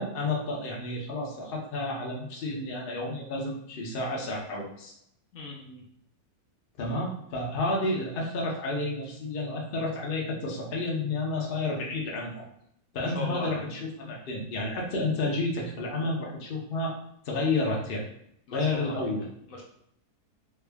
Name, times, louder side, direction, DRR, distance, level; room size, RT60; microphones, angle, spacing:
voice 1, 0.0-4.9 6.8-12.4 12.9-16.9 17.2-18.0 18.5-19.2, left 2 dB, 50° left, -2 dB, 0.8 m, -30 dB
voice 2, 5.3-5.8 13.0-13.6 18.5-19.1 19.5-19.6, equal, 70° left, -2 dB, 1.1 m, -38 dB
3.4 x 2.3 x 3.3 m, 0.73 s
omnidirectional pair, 1.6 m